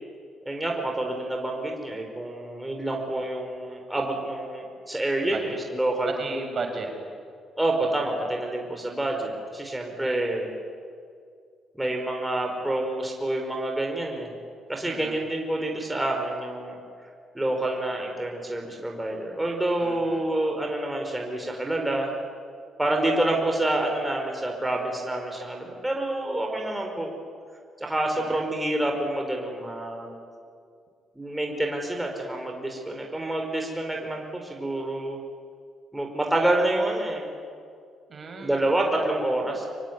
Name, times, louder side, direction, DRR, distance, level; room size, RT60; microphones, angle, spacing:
voice 1, 0.4-6.1 7.6-10.5 11.7-14.3 14.7-16.8 17.3-22.1 22.8-27.1 27.8-30.3 31.1-35.2 35.9-37.3 38.4-39.7, right 1 dB, 10° right, 1 dB, 5.1 m, -28 dB
voice 2, 5.3-5.6 6.1-6.9 14.8-15.2 19.8-20.3 28.2-28.4 38.1-38.6, right 4 dB, 45° right, 3 dB, 5.8 m, -35 dB
25.5 x 23.0 x 9.6 m, 2.2 s
cardioid pair, 90°, 0 cm